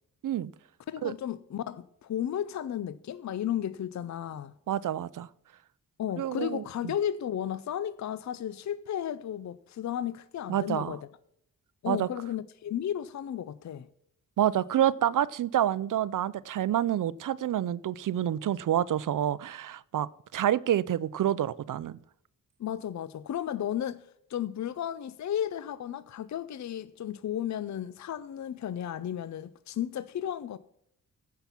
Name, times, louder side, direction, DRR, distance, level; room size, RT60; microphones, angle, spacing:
voice 1, 0.9-4.5 6.0-11.1 11.8-13.9 22.6-30.6, left 10 dB, 55° left, 0.5 m, -34 dB
voice 2, 4.7-5.3 6.2-6.9 10.5-10.9 11.9-12.1 14.4-22.0, right 11 dB, 65° right, 0.5 m, -28 dB
15.0 x 5.8 x 5.7 m
wide cardioid pair, 120°, 34 cm